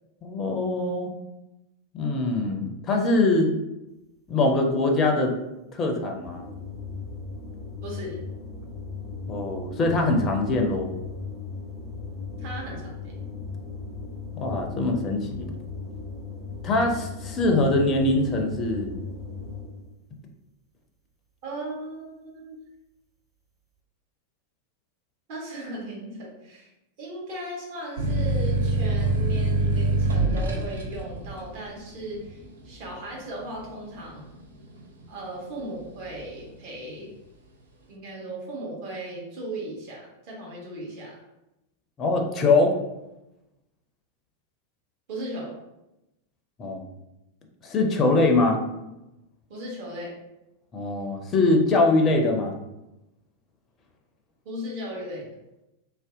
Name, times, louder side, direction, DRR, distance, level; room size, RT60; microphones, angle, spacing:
voice 1, 0.2-1.1 1.9-3.5 4.3-5.3 5.7-6.5 9.3-10.9 14.4-15.5 16.6-18.9 42.0-42.8 46.6-46.8 47.6-48.6 50.7-52.5, left 2 dB, 25° left, 3 dB, 0.4 m, -23 dB
sound 1, 6.2-19.9, left 4 dB, 20° right, 1.3 m, -37 dB
voice 2, 7.8-8.2 12.4-13.1 21.4-22.6 25.3-26.7 27.0-34.2 35.1-37.1 37.9-41.2 45.1-45.5 49.5-50.1 54.4-55.3, right 1 dB, 45° right, -4 dB, 1.0 m, -37 dB
sound 2, 28.0-35.2 35.7-36.4, right 2 dB, 70° right, 0.5 m, -26 dB
2.6 x 2.1 x 3.6 m, 0.95 s
figure-of-eight pair, 90°, 0 cm